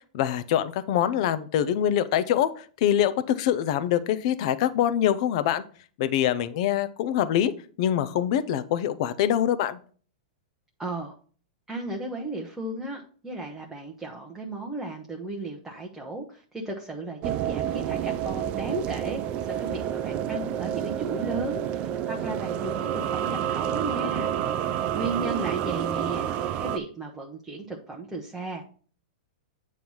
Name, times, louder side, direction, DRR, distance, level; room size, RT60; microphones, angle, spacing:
voice 1, 0.1-5.6 6.0-7.5 7.8-9.8, left 10 dB, 50° left, 12 dB, 0.5 m, -24 dB
voice 2, 10.8-11.1 11.7-24.3 24.9-26.3 26.6-28.6, right 2 dB, 5° right, -1 dB, 0.8 m, -35 dB
sound 1, 17.2-26.8, right 10 dB, 30° right, 0.4 m, -29 dB
8.7 x 3.1 x 5.4 m, 0.43 s
hypercardioid pair, 150°, 4 cm